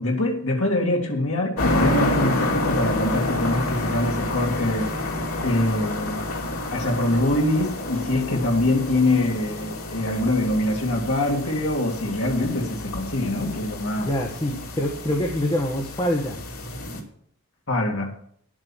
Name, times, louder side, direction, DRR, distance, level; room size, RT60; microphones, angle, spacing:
voice 1, 0.0-4.9 5.4-6.2 6.7-14.1 17.7-18.2, left 1 dB, 70° left, -1 dB, 2.5 m, -24 dB
sound 1, 1.6-17.0, left 1 dB, 85° left, 2.8 m, -29 dB
voice 2, 14.0-16.4, left 1 dB, 20° left, 0 dB, 1.4 m, -25 dB
10.5 x 8.8 x 7.3 m, 0.63 s
head